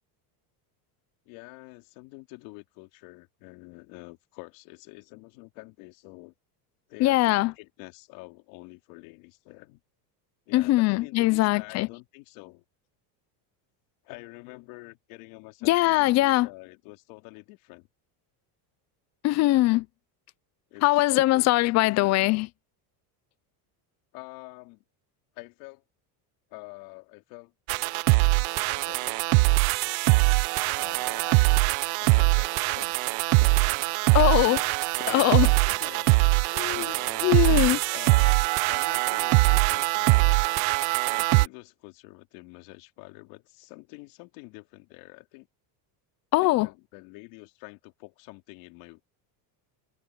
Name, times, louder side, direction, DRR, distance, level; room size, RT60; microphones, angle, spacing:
voice 1, 1.2-6.3 6.9-9.8 10.5-12.6 14.0-17.9 20.7-20.9 21.1-22.2 24.1-24.8 25.3-25.8 26.5-27.5 28.7-29.3 30.7-31.6 32.0-33.1 33.4-33.9 34.4-34.6 34.9-36.1 36.7-37.3 37.9-40.4 41.1-45.5 46.4-49.0, left 24 dB, 70° left, 3.3 m, -47 dB
voice 2, 7.0-7.5 10.5-11.9 15.6-16.5 19.2-19.9 20.8-22.5 34.1-34.6 35.1-35.5 36.5-36.9 37.2-37.8 46.3-46.7, left 18 dB, 35° left, 0.5 m, -21 dB
sound 1, 27.7-41.5, right 26 dB, 60° right, 0.6 m, -22 dB
cardioid pair, 155°, 45 cm